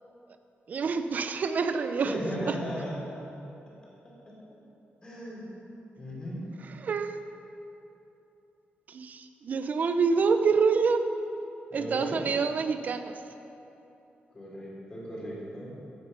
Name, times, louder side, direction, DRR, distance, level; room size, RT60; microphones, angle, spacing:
voice 1, 0.7-2.6 6.8-7.2 8.9-11.1 11.7-13.1, right 5 dB, 45° right, 8 dB, 0.7 m, -27 dB
voice 2, 2.0-2.9 4.3-4.4 5.0-5.5 6.0-6.5 11.7-12.2 14.3-15.8, equal, 25° left, -5 dB, 3.5 m, -36 dB
15.0 x 9.5 x 5.5 m, 2.9 s
wide cardioid pair, 175°, 4 cm